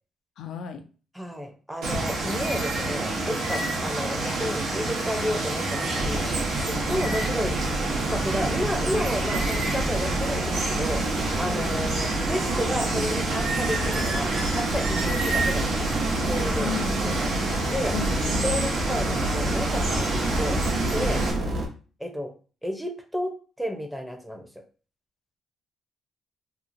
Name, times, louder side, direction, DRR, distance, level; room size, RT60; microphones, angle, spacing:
voice 1, 0.4-0.8 6.9-7.1 11.6-11.8 16.6-17.2 17.9-18.4 21.2-21.5, left 7 dB, 75° left, 6 dB, 0.4 m, -35 dB
voice 2, 1.1-6.3 6.5-7.6 8.0-11.0 11.4-17.3 17.7-17.9 18.4-20.6 20.9-21.2 22.0-22.3 22.6-23.3 23.6-24.5, equal, ahead, 3 dB, 0.6 m, -32 dB
Water, 1.8-21.3, right 2 dB, 90° right, 0.8 m, -28 dB
sound 1, 6.0-21.7, right 1 dB, 60° right, 0.7 m, -29 dB
Bowed string instrument, 6.4-11.3, equal, 30° right, 0.8 m, -43 dB
2.8 x 2.3 x 2.6 m, 0.38 s
cardioid pair, 90°, 0 cm